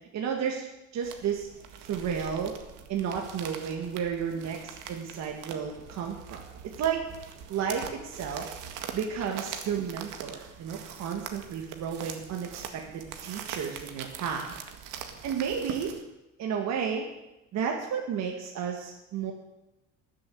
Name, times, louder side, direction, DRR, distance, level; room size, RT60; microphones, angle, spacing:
voice 1, 0.1-0.7 0.9-1.5 1.8-2.6 2.9-7.0 7.5-8.5 8.9-14.5 15.2-16.0 16.4-17.1 17.5-19.3, right 7 dB, 55° right, 1 dB, 2.0 m, -32 dB
sound 1, 1.0-16.0, right 8 dB, 80° right, 1.9 m, -43 dB
19.0 x 7.7 x 7.9 m, 0.97 s
cardioid pair, 145°, 31 cm